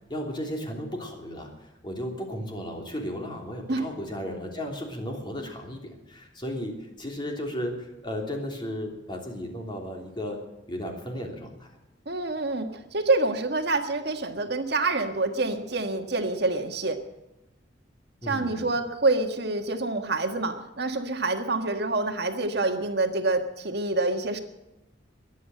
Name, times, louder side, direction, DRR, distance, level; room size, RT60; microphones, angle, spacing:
voice 1, 0.1-11.7 18.2-18.7, equal, 25° left, 2 dB, 3.2 m, -35 dB
voice 2, 12.0-17.0 18.2-24.4, right 3 dB, 60° right, 6 dB, 1.6 m, -27 dB
22.0 x 8.4 x 7.8 m, 0.97 s
head